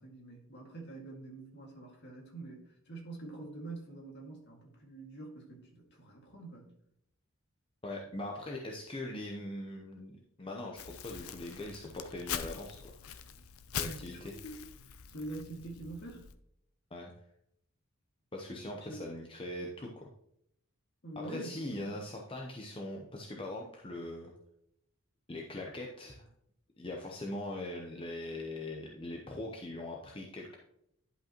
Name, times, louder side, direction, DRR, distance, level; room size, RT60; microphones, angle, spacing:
voice 1, 0.0-6.7 13.8-14.5 15.1-16.3 18.8-19.0 21.0-21.9, right 2 dB, 50° left, 0 dB, 2.0 m, -45 dB
voice 2, 7.8-12.8 13.8-14.3 16.9-17.1 18.3-20.0 21.2-24.3 25.3-26.3 26.8-30.6, left 1 dB, 25° left, 0 dB, 0.7 m, -41 dB
Crumpling crinkling, 10.8-16.4, left 8 dB, 75° left, 0.5 m, -43 dB
11.0 x 5.3 x 2.9 m, 0.75 s
head